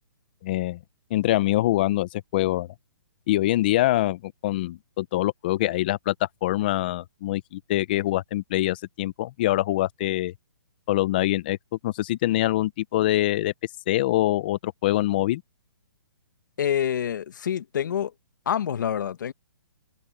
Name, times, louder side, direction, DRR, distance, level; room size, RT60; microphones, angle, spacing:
voice 1, 0.4-0.8 1.1-2.7 3.3-6.1 6.4-10.3 10.9-11.6 11.8-13.5 13.9-15.4, left 15 dB, 25° left, 0.5 m, -24 dB
voice 2, 16.6-18.1 18.5-19.3, left 9 dB, 55° left, 1.2 m, -26 dB
hypercardioid pair, 165°, 12 cm